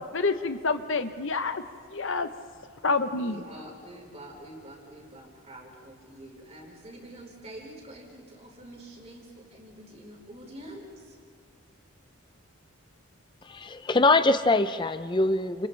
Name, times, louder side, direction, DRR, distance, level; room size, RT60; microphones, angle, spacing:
voice 1, 0.0-1.6 1.9-2.3 2.8-3.4, left 3 dB, 60° left, 9 dB, 0.9 m, -28 dB
voice 2, 2.9-11.2, right 1 dB, 30° right, -1 dB, 4.7 m, -46 dB
voice 3, 13.5-15.7, left 2 dB, 20° left, 11 dB, 0.5 m, -23 dB
30.0 x 28.5 x 3.4 m, 2.3 s
head